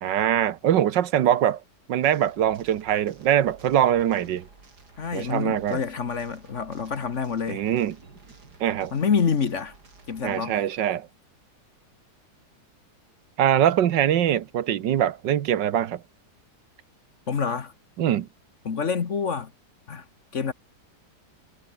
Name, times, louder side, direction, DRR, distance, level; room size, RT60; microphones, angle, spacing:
voice 1, 0.0-1.6 1.9-4.5 5.1-5.8 7.5-8.0 8.6-8.9 10.2-11.1 13.4-16.0 18.0-18.3, right 10 dB, 80° right, 1.7 m, -23 dB
sound 1, 2.0-10.4, right 4 dB, 60° right, 3.8 m, -52 dB
voice 2, 5.0-7.6 8.9-9.7 10.1-10.6 17.3-17.7 18.6-19.5 19.9-20.0 20.3-20.5, left 6 dB, 45° left, 1.5 m, -27 dB
omnidirectional pair, 1.9 m